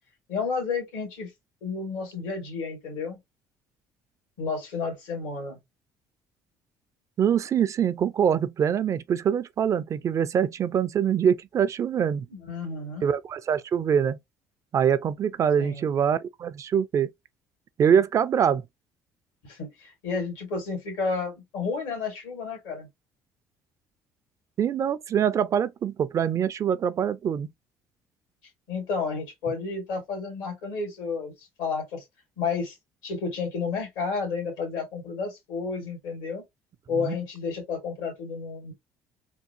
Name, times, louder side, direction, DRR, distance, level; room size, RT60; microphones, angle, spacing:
voice 1, 0.3-1.3 1.6-3.2 4.4-5.6 12.3-13.1 15.6-15.9 19.4-22.9 28.7-32.0 32.4-32.8 33.0-36.4 36.9-38.7, left 4 dB, 80° left, 2.0 m, -31 dB
voice 2, 7.2-12.3 13.0-14.2 14.7-17.1 17.8-18.6 24.6-27.5 36.9-37.1, right 8 dB, 45° right, 0.4 m, -24 dB
3.5 x 2.3 x 2.7 m
supercardioid pair, 70°, 7 cm